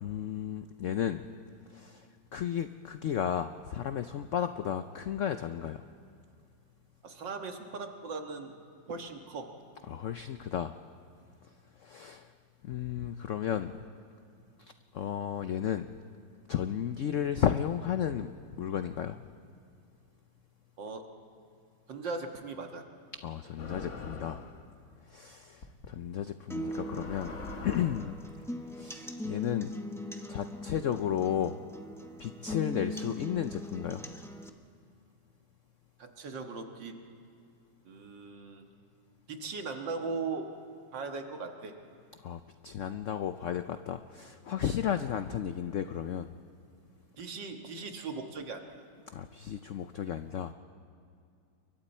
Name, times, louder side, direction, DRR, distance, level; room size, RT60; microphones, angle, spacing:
voice 1, 0.0-1.2 1.7-5.8 9.9-10.7 11.8-12.3 12.6-13.8 14.6-15.9 16.5-19.2 23.2-24.4 25.1-27.3 27.6-28.2 28.7-29.7 30.3-31.6 32.2-34.1 42.2-46.3 49.1-50.5, left 9 dB, 80° left, 10 dB, 0.6 m, -33 dB
voice 2, 7.0-8.6 8.9-9.5 20.8-21.1 21.9-22.8 36.0-37.0 37.9-38.7 39.3-40.5 40.9-41.8 47.2-48.8, right 4 dB, 75° right, 4 dB, 2.2 m, -39 dB
sound 1, 23.6-24.6 25.6-25.9 26.6-28.2, left 3 dB, 45° left, 1.5 m, -43 dB
sound 2, 26.5-34.5, equal, 5° left, 0.3 m, -41 dB
29.0 x 23.0 x 4.3 m, 2.4 s
omnidirectional pair, 2.0 m